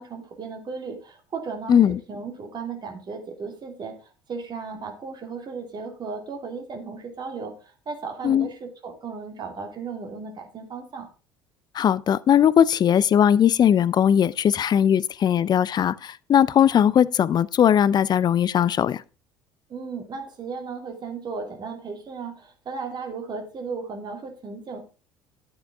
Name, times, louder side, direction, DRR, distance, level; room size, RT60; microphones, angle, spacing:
voice 1, 0.0-1.8 2.1-11.1 19.7-24.8, right 5 dB, 40° right, 2.7 m, -35 dB
voice 2, 1.7-2.0 8.2-8.5 11.7-19.0, left 9 dB, 40° left, 0.5 m, -19 dB
10.5 x 8.7 x 3.6 m
hypercardioid pair, 60°, 11 cm